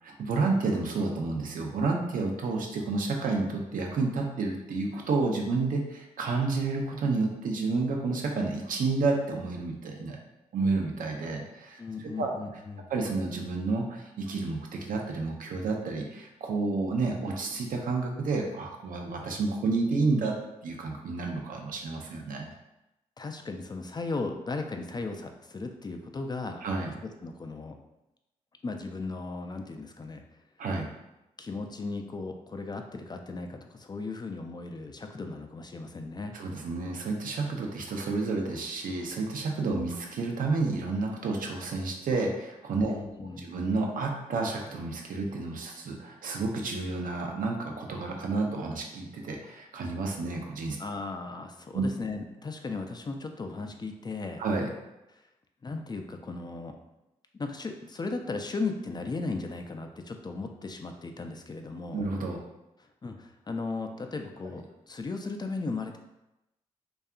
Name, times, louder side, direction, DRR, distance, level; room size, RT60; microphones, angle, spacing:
voice 1, 0.0-10.2 10.5-11.8 12.2-12.3 12.9-20.4 20.6-22.5 26.6-26.9 30.6-30.9 36.3-42.9 43.4-50.8 51.7-51.8 54.4-54.7 61.9-62.4, right 3 dB, 70° right, 1 dB, 0.5 m, -30 dB
voice 2, 11.8-12.9 23.2-26.6 27.0-27.8 28.6-30.2 31.4-36.4 42.9-43.5 50.8-54.4 55.6-56.8 57.3-62.0 62.8-66.0, left 3 dB, 30° left, 5 dB, 0.3 m, -36 dB
2.7 x 2.3 x 2.4 m, 0.93 s
supercardioid pair, 45°, 15 cm